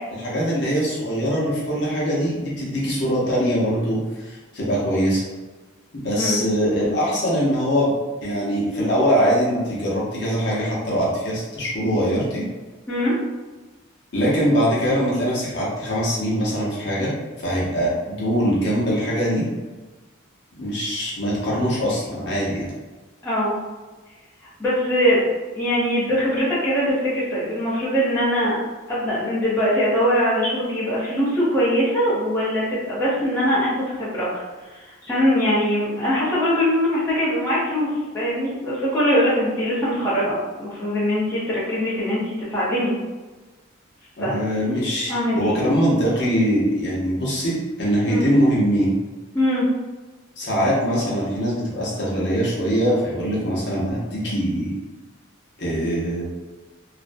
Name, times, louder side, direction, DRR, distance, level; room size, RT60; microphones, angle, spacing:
voice 1, 0.1-5.2 5.9-7.9 8.2-12.4 14.1-19.5 20.6-22.7 44.2-48.9 50.4-54.7 55.6-56.2, equal, 55° left, -6 dB, 0.7 m, -22 dB
voice 2, 23.2-23.6 24.6-25.2 25.5-28.5 28.9-34.4 34.7-37.9 38.1-42.9 44.2-44.4 45.1-45.6 48.1-48.3 49.3-49.7, equal, 10° left, -10 dB, 0.7 m, -22 dB
2.5 x 2.1 x 2.5 m, 1.3 s
head